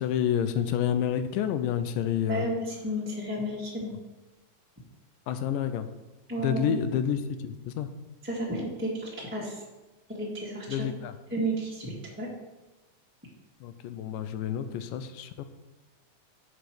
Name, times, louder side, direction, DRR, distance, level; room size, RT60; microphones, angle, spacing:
voice 1, 0.0-2.5 5.3-5.9 6.4-7.9 10.7-11.1 13.6-15.4, left 9 dB, 85° left, 10 dB, 2.3 m, -29 dB
voice 2, 2.3-3.9 6.3-6.8 8.2-9.6 10.1-10.9 11.3-12.3, right 1 dB, 10° right, -6 dB, 0.7 m, -32 dB
8.2 x 5.1 x 6.0 m, 1.1 s
omnidirectional pair, 3.8 m